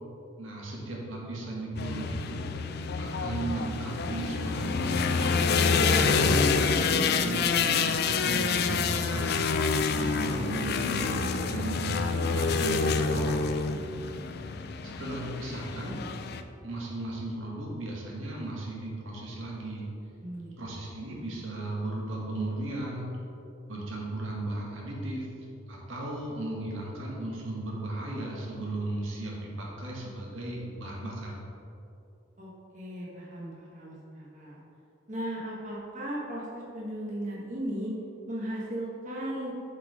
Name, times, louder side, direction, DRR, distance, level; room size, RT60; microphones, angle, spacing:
voice 1, 0.4-2.5 3.0-6.6 7.2-9.4 10.0-11.2 11.4-13.4 14.8-16.0 16.6-19.9 20.6-23.1 23.7-25.3 25.7-31.3, right 2 dB, 85° right, -3 dB, 1.6 m, -36 dB
sound 1, 1.8-16.4, left 4 dB, 55° left, 0.4 m, -27 dB
voice 2, 13.9-14.3 20.2-20.5 32.4-34.6 35.1-37.9 38.3-39.5, right 1 dB, 40° right, -5 dB, 1.3 m, -37 dB
7.3 x 4.7 x 4.9 m, 2.7 s
head